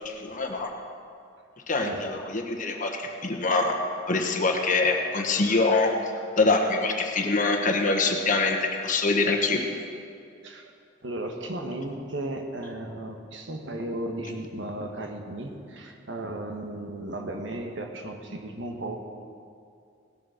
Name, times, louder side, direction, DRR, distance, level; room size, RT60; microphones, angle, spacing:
voice 1, 0.2-0.7 1.7-3.7 4.1-5.9 6.4-8.6 8.8-9.6, left 3 dB, 40° left, 3 dB, 1.2 m, -24 dB
voice 2, 11.0-19.1, right 1 dB, 65° right, 4 dB, 1.3 m, -35 dB
18.0 x 7.0 x 6.4 m, 2.4 s
head